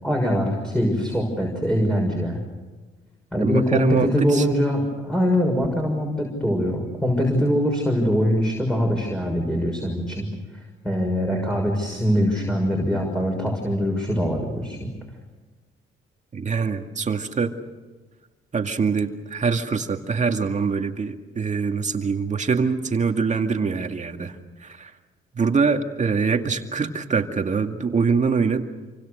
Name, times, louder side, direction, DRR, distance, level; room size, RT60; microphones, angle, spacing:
voice 1, 0.0-2.4 3.3-10.3 10.8-14.9, equal, 5° left, 0 dB, 6.4 m, -23 dB
voice 2, 3.4-4.5 16.3-17.5 18.5-24.4 24.6-24.9 25.3-28.6, right 5 dB, 35° right, 5 dB, 2.3 m, -24 dB
27.5 x 25.5 x 6.7 m, 1.3 s
cardioid pair, 90°, 20 cm